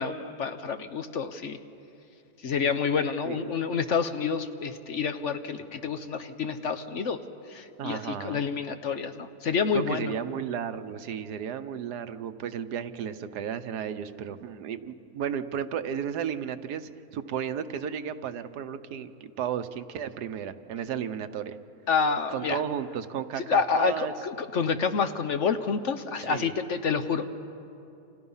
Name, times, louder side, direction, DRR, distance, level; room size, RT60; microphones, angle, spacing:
voice 1, 0.0-1.6 2.4-7.2 7.5-10.1 21.9-22.6 23.5-27.3, left 5 dB, 55° left, 9 dB, 1.1 m, -28 dB
voice 2, 7.8-8.4 9.7-21.6 22.3-24.1 26.2-26.5, right 8 dB, 80° right, 10 dB, 1.4 m, -34 dB
29.0 x 27.5 x 5.6 m, 2.7 s
omnidirectional pair, 1.7 m